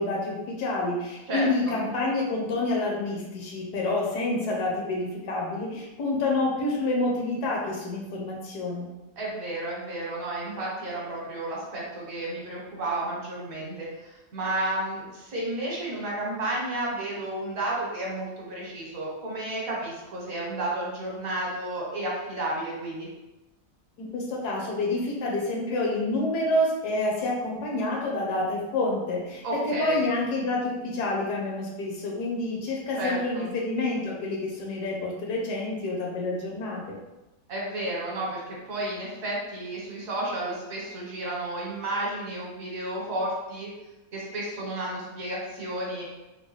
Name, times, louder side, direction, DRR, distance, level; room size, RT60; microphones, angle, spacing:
voice 1, 0.0-8.9 24.0-37.0, left 2 dB, 75° left, -2 dB, 1.3 m, -28 dB
voice 2, 1.3-1.8 9.2-23.1 29.4-30.0 33.0-33.5 37.5-43.7 44.1-46.0, right 1 dB, 60° right, -4 dB, 1.2 m, -32 dB
3.9 x 2.1 x 3.1 m, 1.0 s
omnidirectional pair, 1.8 m